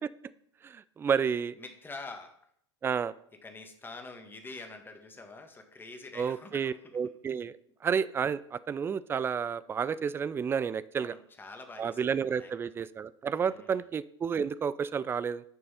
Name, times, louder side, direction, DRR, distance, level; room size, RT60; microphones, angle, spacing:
voice 1, 0.6-1.6 2.8-3.1 6.2-7.5 7.8-11.1 11.8-15.4, right 6 dB, 15° right, 17 dB, 0.3 m, -31 dB
voice 2, 1.6-2.3 3.4-7.0 11.0-12.5 13.5-13.8, left 3 dB, 15° left, 5 dB, 1.4 m, -46 dB
9.9 x 5.4 x 4.2 m, 0.66 s
figure-of-eight pair, 85°, 15 cm